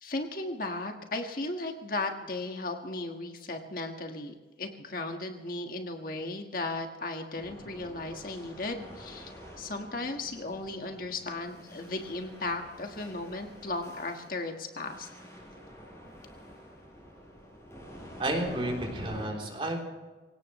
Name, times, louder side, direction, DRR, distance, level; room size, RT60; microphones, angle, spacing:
voice 1, 0.0-15.1, left 2 dB, 50° left, 4 dB, 1.6 m, -36 dB
sound 1, 7.4-19.3, equal, 15° left, 5.5 m, -48 dB
voice 2, 18.2-19.8, right 1 dB, 30° right, 1 dB, 3.4 m, -31 dB
25.0 x 17.5 x 3.1 m, 1.3 s
head